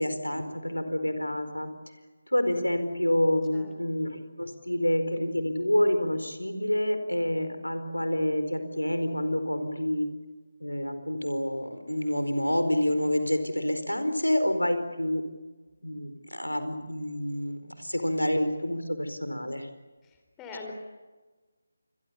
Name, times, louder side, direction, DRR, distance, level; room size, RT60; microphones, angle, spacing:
voice 1, 0.0-1.7 2.3-10.1 10.6-15.2 15.8-19.7, left 1 dB, 85° left, 9 dB, 4.5 m, -28 dB
voice 2, 20.0-20.7, left 4 dB, 10° left, 2 dB, 3.4 m, -43 dB
28.0 x 23.5 x 7.0 m, 1.3 s
figure-of-eight pair, 155°, 0 cm